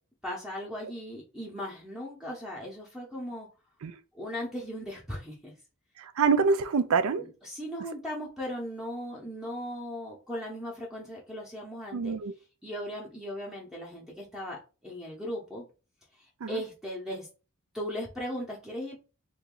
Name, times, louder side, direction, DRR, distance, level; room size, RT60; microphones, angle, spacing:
voice 1, 0.2-3.5 4.1-5.5 7.2-12.1 12.6-15.7 16.5-17.3 17.7-19.0, equal, ahead, 0.8 m, -37 dB
voice 2, 6.0-7.3 11.9-12.3 16.4-16.6, right 5 dB, 70° right, 0.4 m, -26 dB
2.9 x 2.6 x 3.7 m
head